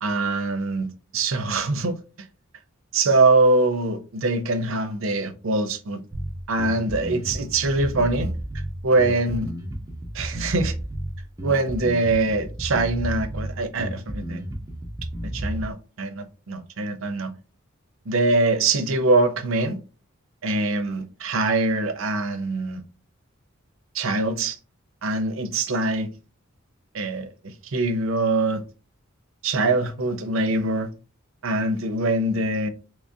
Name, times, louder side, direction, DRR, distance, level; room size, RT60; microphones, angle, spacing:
voice 1, 0.0-2.0 2.9-6.0 6.5-8.3 8.8-9.5 10.1-10.7 11.4-14.4 15.3-17.3 18.1-19.8 20.4-22.8 23.9-24.6 25.0-26.1 26.9-27.3 27.7-28.6 29.4-30.9 31.4-32.7, right 2 dB, 70° right, 0.6 m, -23 dB
Bass guitar, 6.1-15.7, right 1 dB, 15° right, 0.7 m, -32 dB
3.8 x 3.1 x 2.7 m
head